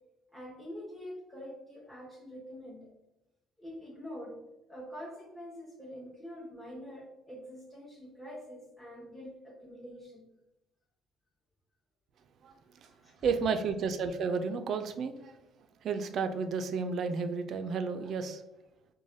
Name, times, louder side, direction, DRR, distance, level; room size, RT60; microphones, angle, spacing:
voice 1, 0.3-2.9 3.6-4.4 4.7-10.3 12.8-13.3, equal, 10° left, -5 dB, 0.7 m, -45 dB
voice 2, 13.2-15.3 15.8-18.4, right 5 dB, 60° right, 8 dB, 0.3 m, -32 dB
3.1 x 2.1 x 2.5 m, 0.91 s
supercardioid pair, 85°, 0 cm